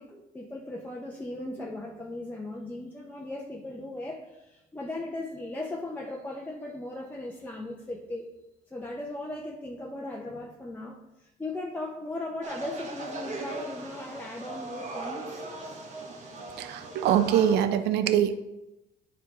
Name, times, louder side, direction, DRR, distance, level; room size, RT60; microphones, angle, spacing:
voice 1, 0.0-8.3 8.7-15.8, left 2 dB, 10° left, -2 dB, 0.8 m, -38 dB
sound 1, 12.4-17.6, right 2 dB, 45° right, 1.3 m, -39 dB
voice 2, 16.6-18.3, right 10 dB, 80° right, 11 dB, 0.5 m, -23 dB
9.2 x 4.6 x 3.6 m, 0.96 s
cardioid pair, 110°, 17 cm